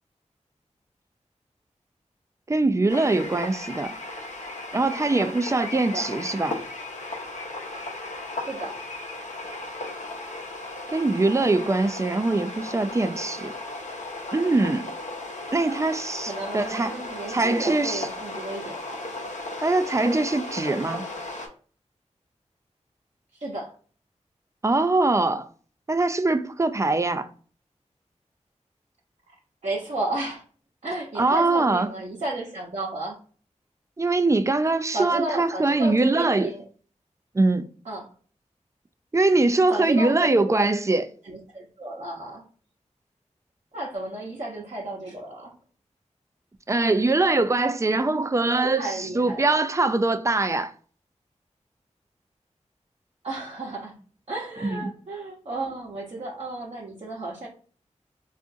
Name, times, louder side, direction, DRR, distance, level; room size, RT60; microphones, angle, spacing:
voice 1, 2.5-3.9 4.7-6.6 10.9-13.5 14.3-14.9 15.5-17.0 17.3-18.1 19.6-21.0 24.6-25.5 25.9-27.3 31.2-31.9 34.0-36.5 37.3-37.7 39.1-41.1 46.7-50.7 54.6-54.9, right 2 dB, 25° right, 0.3 m, -22 dB
sound 1, 2.9-21.5, left 2 dB, 75° left, 0.7 m, -36 dB
voice 2, 8.5-8.8 15.6-15.7 16.2-19.0 23.4-23.7 29.6-30.4 30.8-33.2 34.9-36.6 37.8-38.1 39.7-40.5 41.2-42.4 43.7-45.5 48.4-49.6 53.2-53.9 54.3-57.5, right 2 dB, 60° right, 0.8 m, -33 dB
3.6 x 2.5 x 2.5 m
wide cardioid pair, 50°, 12 cm